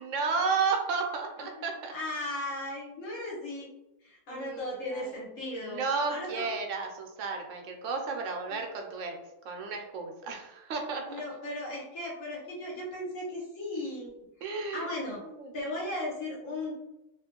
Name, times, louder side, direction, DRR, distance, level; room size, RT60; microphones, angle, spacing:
voice 1, 0.0-1.9 4.3-5.1 5.6-9.2 9.4-11.2 14.4-14.9 15.2-15.5, right 4 dB, 75° right, 3 dB, 0.9 m, -33 dB
voice 2, 1.9-3.7 4.0-6.5 8.5-8.6 11.1-14.1 14.7-15.2 15.5-16.7, left 1 dB, 85° left, -4 dB, 1.3 m, -36 dB
2.9 x 2.5 x 2.8 m, 0.94 s
omnidirectional pair, 1.3 m